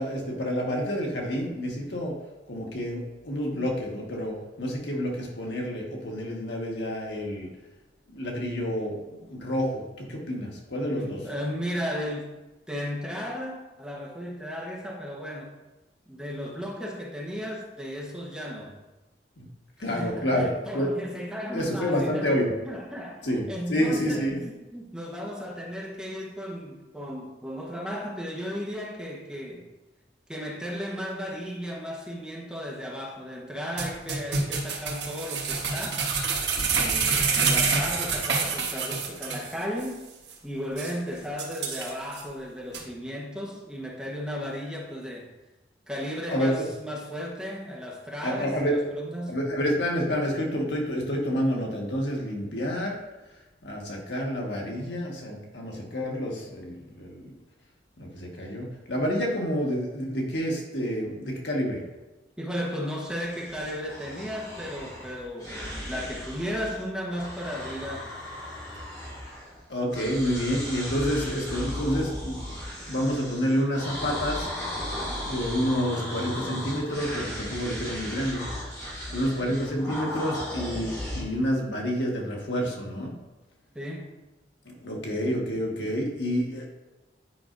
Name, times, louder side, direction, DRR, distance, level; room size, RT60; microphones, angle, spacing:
voice 1, 0.0-2.2 2.5-7.5 8.1-11.2 19.4-19.5 19.8-20.9 21.5-22.5 23.2-24.4 46.3-46.7 48.2-48.8 49.3-53.0 53.6-57.3 58.0-61.8 69.7-72.4 72.9-74.5 75.0-78.5 79.1-83.1 84.6-86.7, equal, 85° left, -1 dB, 1.5 m, -29 dB
voice 2, 10.9-12.3 12.7-15.5 16.1-18.7 19.9-22.3 22.7-29.7 30.3-36.1 36.7-40.0 40.4-45.3 45.9-49.4 62.4-68.1 79.1-79.5 83.7-84.1, equal, 5° right, -3 dB, 1.1 m, -35 dB
sound 1, 33.8-39.5 39.8-39.9 40.3-40.4 40.8-40.9 41.4-42.2 42.7-42.8, right 5 dB, 80° right, 1.2 m, -27 dB
sound 2, 63.1-66.8 67.1-69.6 69.9-81.2, left 1 dB, 20° left, 2.5 m, -36 dB
9.5 x 5.4 x 2.6 m, 1.1 s
head